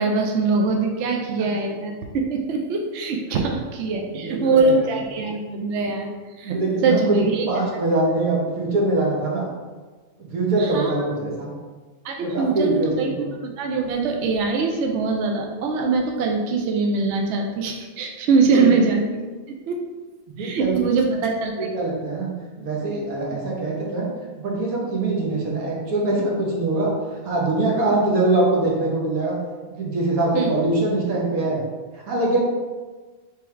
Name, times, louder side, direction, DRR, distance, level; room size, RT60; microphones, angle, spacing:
voice 1, 0.0-6.1 6.4-6.6 6.8-7.5 10.6-10.9 12.0-13.1 13.6-19.0 19.7-19.8 20.4-21.7 30.3-30.5, right 4 dB, 65° right, 2 dB, 0.8 m, -22 dB
voice 2, 4.1-4.8 6.5-9.5 10.3-11.5 12.2-13.3 18.5-18.7 20.3-21.2 21.6-22.3 22.6-24.1 24.4-26.9 27.2-29.4 29.7-31.6 31.9-32.4, right 2 dB, 85° right, -2 dB, 1.5 m, -23 dB
3.5 x 3.4 x 4.4 m, 1.3 s
omnidirectional pair, 1.5 m